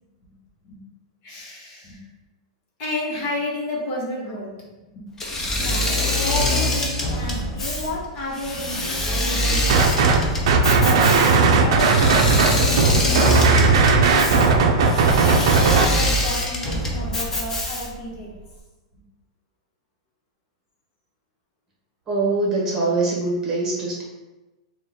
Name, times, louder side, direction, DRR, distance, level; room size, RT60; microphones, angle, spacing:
voice 1, 1.2-2.0 2.8-5.9 6.2-9.8 10.7-14.6 15.2-18.3, left 1 dB, 40° left, -3 dB, 1.4 m, -32 dB
Engine / Mechanisms, 5.2-18.1, left 1 dB, 15° left, 0.6 m, -24 dB
sound 1, 9.7-10.2 10.5-15.8, right 4 dB, 65° right, 0.5 m, -16 dB
voice 2, 22.1-24.0, right 3 dB, 15° right, -4 dB, 1.4 m, -23 dB
4.3 x 2.5 x 3.6 m, 1.1 s
supercardioid pair, 155°, 3 cm